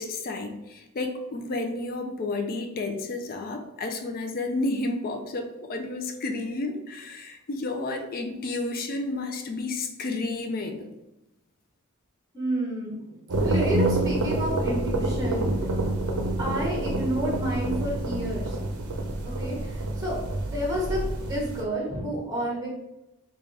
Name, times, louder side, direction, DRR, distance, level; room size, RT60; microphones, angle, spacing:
voice 1, 0.0-10.9, left 2 dB, 40° left, 5 dB, 0.4 m, -31 dB
voice 2, 12.3-15.5 16.4-18.6 19.4-20.2 20.5-22.7, right 1 dB, 15° right, -4 dB, 0.9 m, -30 dB
sound 1, 13.3-21.6, right 1 dB, 75° right, 0.6 m, -28 dB
3.3 x 2.3 x 3.8 m, 0.95 s
head